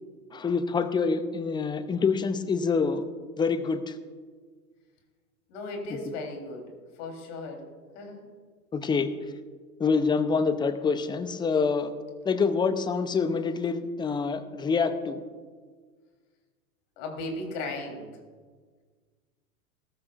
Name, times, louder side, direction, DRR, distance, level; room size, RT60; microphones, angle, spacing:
voice 1, 0.3-3.1 3.4-4.0 8.7-9.1 9.8-11.9 12.2-15.2, left 5 dB, 10° left, 11 dB, 0.7 m, -26 dB
voice 2, 5.5-8.3 17.0-18.1, left 2 dB, 50° left, 2 dB, 3.8 m, -37 dB
18.0 x 13.5 x 2.6 m, 1.5 s
figure-of-eight pair, 95°, 45 cm